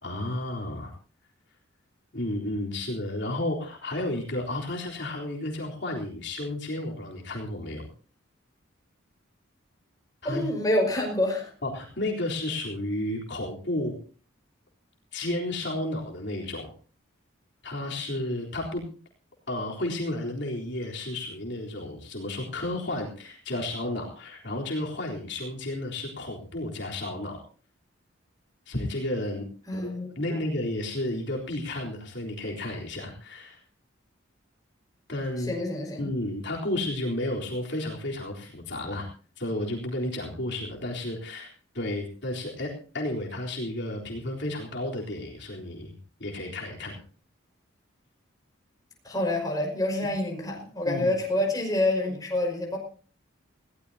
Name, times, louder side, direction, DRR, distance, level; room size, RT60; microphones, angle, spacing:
voice 1, 0.0-0.9 2.1-7.8 10.2-10.5 11.6-14.0 15.1-16.7 17.6-18.8 19.5-27.4 28.7-29.5 29.7-33.6 35.1-35.5 36.0-39.1 39.4-45.9 46.2-47.0 50.9-51.2, left 1 dB, 55° left, -1 dB, 3.8 m, -32 dB
voice 2, 10.2-11.5 29.7-30.1 35.4-36.1 49.0-52.8, left 1 dB, 20° left, 0 dB, 5.4 m, -27 dB
20.0 x 17.5 x 2.8 m, 0.39 s
head